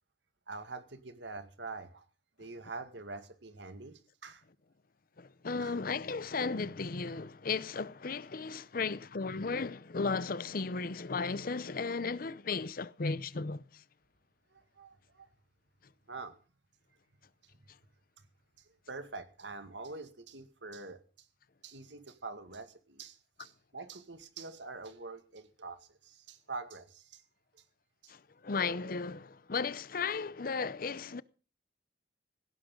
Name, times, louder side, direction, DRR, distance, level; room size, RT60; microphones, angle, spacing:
voice 1, 0.5-2.1 2.4-4.4 5.6-5.8 14.5-15.3 16.1-16.4 18.6-21.3 21.6-27.2 27.5-27.6 28.0-28.1, right 3 dB, 85° right, 2.0 m, -45 dB
voice 2, 5.2-13.8 28.1-31.2, left 4 dB, 55° left, 0.7 m, -35 dB
18.0 x 17.0 x 3.8 m
head